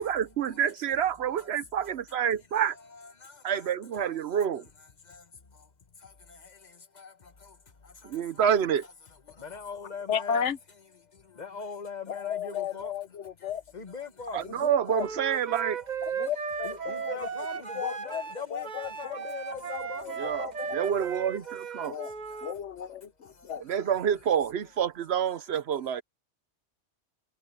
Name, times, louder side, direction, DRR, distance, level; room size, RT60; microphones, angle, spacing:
voice 1, 0.0-2.8 3.4-4.7 8.0-8.8 14.3-15.8 20.1-22.0 23.6-26.0, right 8 dB, 65° right, 0.9 m, -28 dB
voice 2, 6.0-7.5 7.8-8.1 9.4-10.5 11.3-12.9 13.4-14.4 16.6-20.1 21.8-22.0 23.2-23.3, left 5 dB, 40° left, 1.2 m, -41 dB
voice 3, 10.1-10.6 12.1-13.6 14.6-15.0 16.2-17.2 17.7-18.2 18.5-18.6 19.2-20.5 21.9-22.1 22.4-23.0 23.5-23.6, left 8 dB, 80° left, 1.2 m, -33 dB
Wind instrument woodwind instrument, 15.0-22.5, right 6 dB, 40° right, 1.0 m, -36 dB
omnidirectional pair, 1.2 m